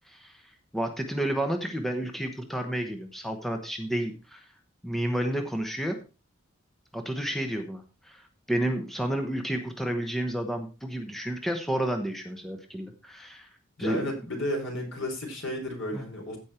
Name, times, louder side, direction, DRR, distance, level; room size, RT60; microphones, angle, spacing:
voice 1, 0.7-4.4 4.8-6.0 6.9-8.2 8.5-13.5 13.8-14.1 15.9-16.0, right 1 dB, ahead, 4 dB, 1.1 m, -31 dB
voice 2, 13.8-16.4, left 1 dB, 75° left, 1 dB, 4.3 m, -33 dB
15.5 x 5.3 x 4.3 m, 0.32 s
head